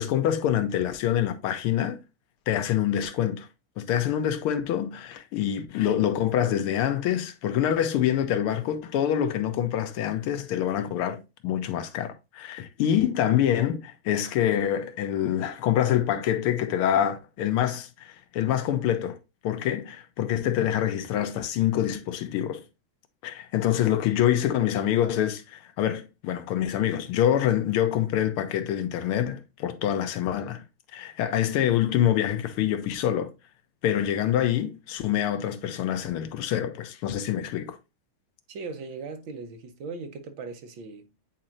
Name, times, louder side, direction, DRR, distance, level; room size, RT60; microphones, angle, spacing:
voice 1, 0.0-2.0 2.5-3.5 3.8-19.2 19.4-22.6 23.2-30.6 30.9-33.3 33.8-37.8, left 10 dB, 90° left, 1.7 m, -26 dB
voice 2, 38.5-41.1, right 4 dB, 70° right, 1.7 m, -38 dB
8.6 x 4.3 x 2.5 m
omnidirectional pair, 2.3 m